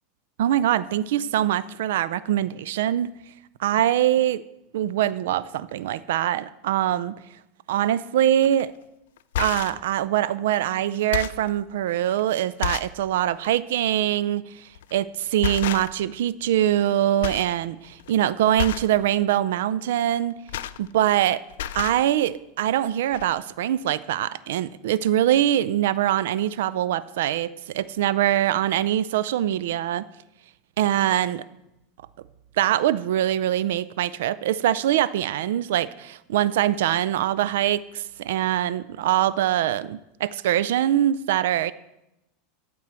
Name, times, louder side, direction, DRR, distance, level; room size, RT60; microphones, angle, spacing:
voice 1, 0.4-3.1 3.6-4.4 4.7-7.1 7.7-8.7 9.4-20.4 20.8-21.4 21.7-30.1 30.8-31.4 32.6-41.7, right 12 dB, 80° right, 17 dB, 0.4 m, -23 dB
sound 1, 8.4-8.6 9.2-9.8 10.5-10.6 11.0-11.5 12.1-12.2 12.6-13.0 13.4-13.6 14.7-15.0 15.4-16.1 16.4-16.9 17.2-17.5 17.8-18.1 18.6-19.0 20.1-21.2 21.5-22.0 22.8-22.9 23.1-23.3, left 10 dB, 85° left, 0.4 m, -31 dB
13.0 x 4.5 x 7.5 m, 0.89 s
supercardioid pair, 150°, 0 cm